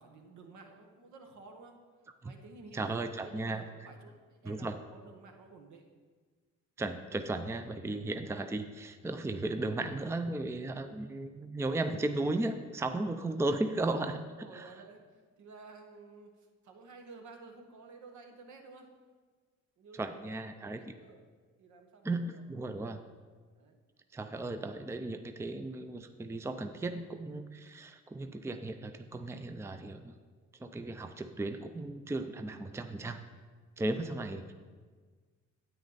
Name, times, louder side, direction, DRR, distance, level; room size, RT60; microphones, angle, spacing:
voice 1, 0.0-1.8 2.2-5.8 14.4-15.0 15.4-16.3 16.6-18.9 19.8-21.2 21.6-22.8 23.5-23.8 33.8-33.9, right 3 dB, 75° right, 3 dB, 1.5 m, -53 dB
voice 2, 2.7-3.6 4.4-4.8 6.8-14.7 20.0-20.8 22.0-23.0 24.1-30.1 30.6-33.2 33.8-34.5, right 2 dB, 10° right, 8 dB, 0.5 m, -35 dB
9.6 x 8.8 x 4.1 m, 1.5 s
cardioid pair, 90°, 30 cm